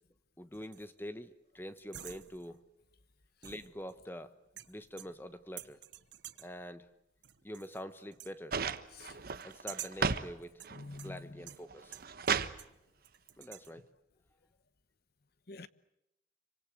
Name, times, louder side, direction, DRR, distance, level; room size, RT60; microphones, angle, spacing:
voice 1, 0.4-2.6 3.4-4.3 4.7-5.8 6.4-6.9 7.4-8.6 9.4-10.6 11.0-12.0 13.4-13.9, equal, 10° left, 1.1 m, -45 dB
sound 1, 0.5-1.0 1.8-2.6 3.4-4.2 4.6-5.3 5.6-6.6 7.2-7.8 8.1-8.4 9.4-10.1 10.6-12.8 13.0-13.7, right 12 dB, 70° right, 1.2 m, -49 dB
sound 2, 8.5-10.3 10.6-11.2 11.7-12.6 13.8-13.9, right 5 dB, 50° right, 1.1 m, -34 dB
voice 2, 10.7-11.4 15.5-15.7, left 3 dB, 55° left, 1.1 m, -47 dB
27.0 x 25.0 x 7.8 m
head